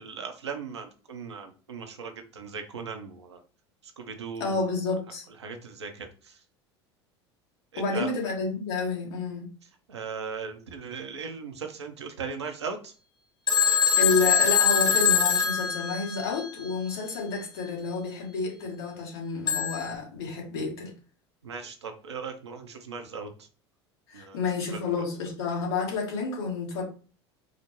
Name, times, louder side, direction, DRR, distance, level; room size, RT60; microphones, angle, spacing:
voice 1, 0.0-3.4 4.0-4.6 5.4-6.3 7.7-8.1 9.9-12.9 21.4-23.3 24.1-24.4 24.7-24.9, right 5 dB, 85° right, 0.7 m, -38 dB
voice 2, 4.4-5.2 7.8-9.5 14.0-20.9 24.1-26.8, left 4 dB, 70° left, 1.6 m, -30 dB
Telephone, 13.5-16.5 19.5-19.9, left 7 dB, 30° left, 1.1 m, -23 dB
5.0 x 2.1 x 3.0 m
hypercardioid pair, 75°, 14 cm